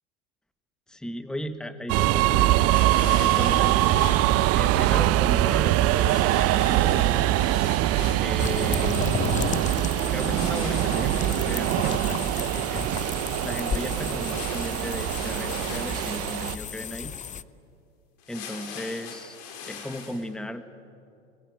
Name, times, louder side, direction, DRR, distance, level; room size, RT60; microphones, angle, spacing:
voice 1, 0.9-2.6 3.1-3.8 4.5-7.3 8.2-9.1 10.1-12.8 13.4-17.1 18.3-19.4 19.6-20.6, equal, ahead, 9 dB, 1.4 m, -36 dB
sound 1, 1.9-16.6, right 15 dB, 45° right, 0.9 m, -23 dB
sound 2, 2.7-4.2 5.8-8.3 10.2-12.5 14.2-16.3 18.2-20.2, left 6 dB, 65° left, 5.2 m, -41 dB
sound 3, 8.4-17.4, left 8 dB, 25° left, 0.8 m, -33 dB
26.0 x 22.0 x 9.3 m, 2.4 s
hypercardioid pair, 95°, 32 cm